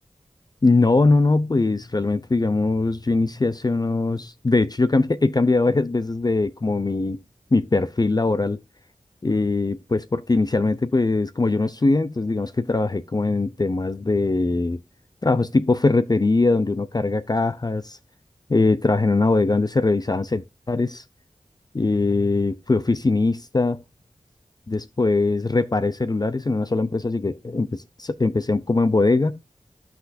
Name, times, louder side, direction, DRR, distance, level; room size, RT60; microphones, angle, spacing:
voice 1, 0.6-7.2 7.5-8.6 9.2-14.8 15.2-18.0 18.5-21.0 21.7-23.8 24.7-29.4, left 3 dB, 30° left, 0.5 m, -21 dB
12.5 x 5.9 x 2.6 m
wide cardioid pair, 65°, 12 cm